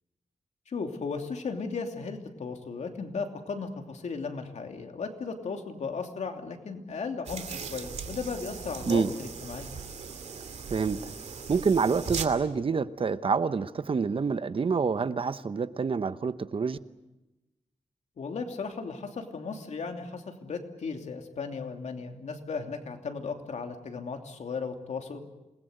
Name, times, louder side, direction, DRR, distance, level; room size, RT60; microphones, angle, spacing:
voice 1, 0.7-9.7 18.2-25.2, left 4 dB, 80° left, 4 dB, 2.8 m, -36 dB
sound 1, 7.3-12.2, right 5 dB, 75° right, 2.6 m, -38 dB
voice 2, 10.7-11.1 11.5-16.8, right 5 dB, 50° right, 13 dB, 0.9 m, -27 dB
27.5 x 20.5 x 8.0 m, 1.0 s
wide cardioid pair, 105°, 12 cm